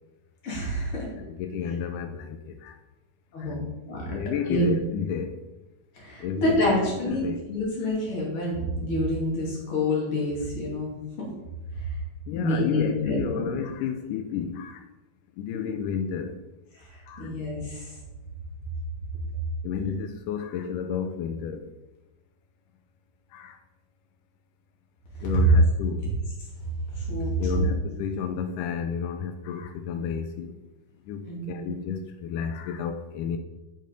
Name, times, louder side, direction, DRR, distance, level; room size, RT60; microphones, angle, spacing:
voice 1, 0.4-1.1 3.3-3.6 3.9-4.1 4.5-4.8 5.9-10.9 12.3-13.5 16.7-17.9 26.9-27.7 31.3-31.7, equal, 40° left, -3 dB, 3.0 m, -28 dB
voice 2, 1.2-2.8 3.4-3.6 3.9-5.4 6.2-6.8 7.1-7.4 12.3-14.8 15.4-16.4 17.1-17.3 19.6-21.7 23.3-23.6 25.2-26.2 27.4-30.6 31.1-33.4, left 7 dB, 90° left, 7 dB, 1.9 m, -31 dB
8.7 x 5.5 x 5.2 m, 1.1 s
omnidirectional pair, 4.4 m